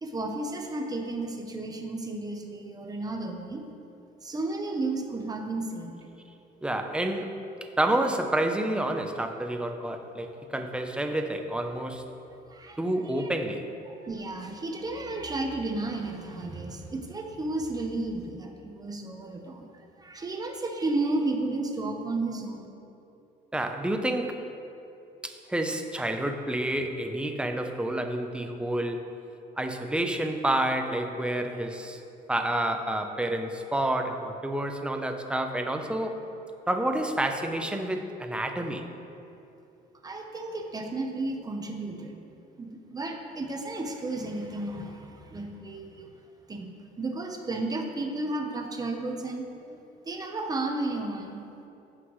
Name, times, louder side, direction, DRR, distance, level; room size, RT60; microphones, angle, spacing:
voice 1, 0.0-3.6 4.2-6.0 12.5-12.8 13.2-13.3 14.0-19.7 20.0-22.7 40.0-42.1 42.6-46.1 46.5-49.5 50.0-51.5, right 2 dB, 20° right, 3 dB, 1.0 m, -33 dB
voice 2, 6.6-12.0 12.8-13.7 23.5-24.5 25.2-29.1 29.6-32.0 32.3-36.2 36.7-38.9 49.7-49.8, right 1 dB, 5° right, 5 dB, 0.7 m, -29 dB
15.5 x 5.9 x 3.2 m, 2.8 s
cardioid pair, 110°, 17 cm